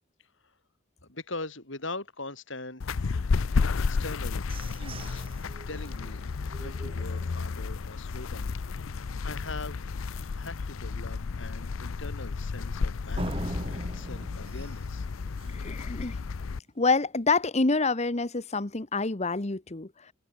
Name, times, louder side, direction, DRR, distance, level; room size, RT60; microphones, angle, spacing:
voice 1, 1.0-2.8 3.8-4.5 4.7-5.3 5.7-6.2 6.6-9.9 10.3-15.1, left 2 dB, 65° left, 7.1 m, -41 dB
sound 1, 2.8-16.6, left 4 dB, 90° left, 0.6 m, -32 dB
sound 2, 3.9-7.8 8.2-8.3 8.7-9.1 9.5-9.6 10.1-10.2 13.2-15.8, right 1 dB, 30° right, 2.8 m, -41 dB
voice 2, 15.5-16.2 16.8-20.1, left 3 dB, 35° left, 1.2 m, -27 dB
head